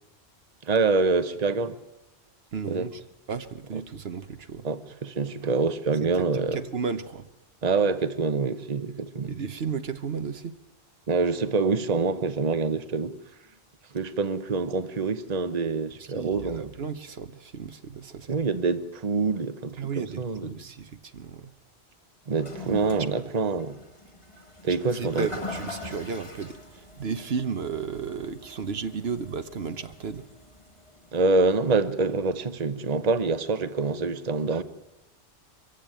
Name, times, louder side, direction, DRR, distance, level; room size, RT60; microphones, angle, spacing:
voice 1, 0.6-1.8 2.7-2.9 3.7-3.8 4.6-6.6 7.6-9.4 11.1-13.1 13.9-16.7 18.3-20.5 22.3-23.8 24.6-25.3 31.1-34.6, right 4 dB, 40° right, 1.1 m, -26 dB
voice 2, 2.5-3.0 3.3-4.7 6.0-6.1 6.5-7.3 9.3-10.5 16.0-18.4 19.8-21.5 24.7-30.2, right 5 dB, 70° right, 1.2 m, -34 dB
Toilet flush, 22.3-31.6, left 2 dB, 30° left, 2.1 m, -42 dB
23.5 x 15.5 x 9.1 m
omnidirectional pair, 1.1 m